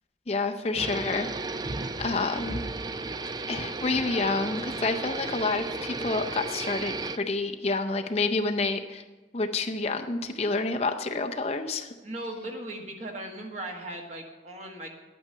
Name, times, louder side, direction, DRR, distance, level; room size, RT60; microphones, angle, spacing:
voice 1, 0.3-1.3 2.0-2.6 3.5-9.0 9.3-11.9, left 3 dB, 35° left, 5 dB, 0.5 m, -28 dB
sound 1, 0.7-7.2, right 3 dB, 20° right, 0.3 m, -34 dB
voice 2, 12.0-15.0, right 1 dB, 35° right, 2 dB, 1.5 m, -38 dB
11.5 x 8.9 x 5.6 m, 1.2 s
head